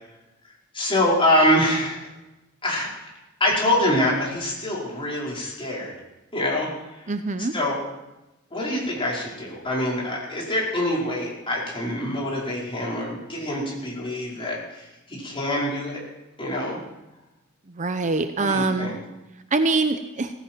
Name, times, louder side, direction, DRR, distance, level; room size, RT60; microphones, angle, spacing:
voice 1, 0.7-2.1 2.6-3.1 3.4-5.9 6.3-7.1 7.4-7.8 8.5-16.0 16.4-16.8 18.4-19.0, left 1 dB, 25° left, -4 dB, 4.8 m, -25 dB
voice 2, 7.1-7.5 17.8-18.9 19.5-20.3, right 3 dB, 35° right, 8 dB, 0.7 m, -24 dB
17.0 x 15.5 x 4.5 m, 0.98 s
head